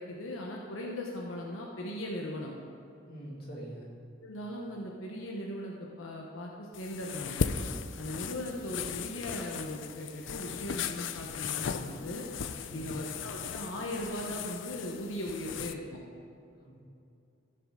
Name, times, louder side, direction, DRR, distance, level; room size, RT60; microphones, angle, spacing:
voice 1, 0.0-2.5 4.2-7.5 8.0-12.3 12.7-16.0, left 1 dB, 85° left, -2 dB, 1.0 m, -38 dB
voice 2, 3.1-3.9 12.7-13.0 16.6-16.7, right 1 dB, 50° left, -4 dB, 2.3 m, -44 dB
sound 1, 6.7-15.7, left 6 dB, 70° left, 0.5 m, -37 dB
14.5 x 6.6 x 3.8 m, 2.7 s
head